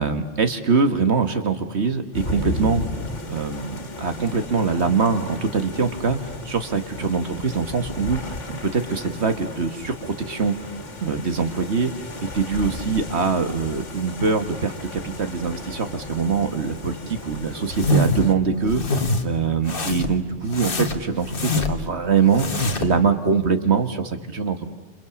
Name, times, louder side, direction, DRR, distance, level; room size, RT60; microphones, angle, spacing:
voice 1, 0.0-2.9 3.3-10.5 11.0-11.9 12.2-24.7, right 5 dB, 65° right, 8 dB, 1.9 m, -23 dB
sound 1, 2.1-18.3, left 2 dB, 85° left, 2.4 m, -35 dB
sound 2, 17.7-18.3 18.7-19.2 19.7-20.2 20.5-21.9 22.3-23.0, left 2 dB, 50° left, 1.7 m, -24 dB
29.0 x 27.5 x 7.2 m, 1.1 s
omnidirectional pair, 1.2 m